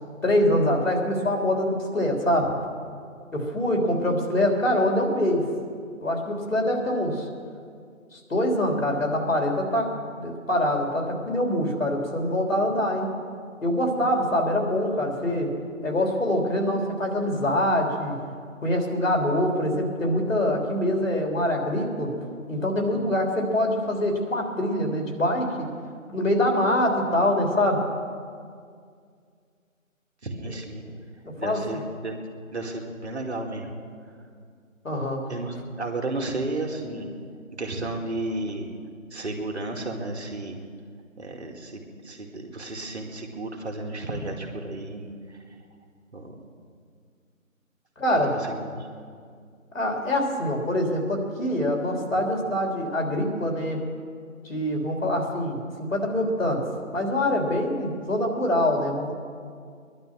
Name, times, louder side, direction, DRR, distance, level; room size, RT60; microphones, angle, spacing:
voice 1, 0.2-2.5 3.3-5.4 6.0-7.3 8.1-13.1 13.6-15.5 15.8-18.2 18.6-22.1 22.5-25.5 26.1-27.8 31.2-31.8 34.8-35.2 48.0-48.4 49.7-53.8 54.5-56.6 56.9-59.1, left 1 dB, 70° left, 0 dB, 3.5 m, -24 dB
voice 2, 30.2-30.8 31.4-32.2 32.5-33.7 35.3-37.1 37.6-38.7 39.1-40.6 41.2-45.4 46.1-46.4 48.3-48.7, right 2 dB, 50° right, 2 dB, 2.4 m, -33 dB
20.0 x 11.5 x 6.1 m, 2.2 s
figure-of-eight pair, 160°, 41 cm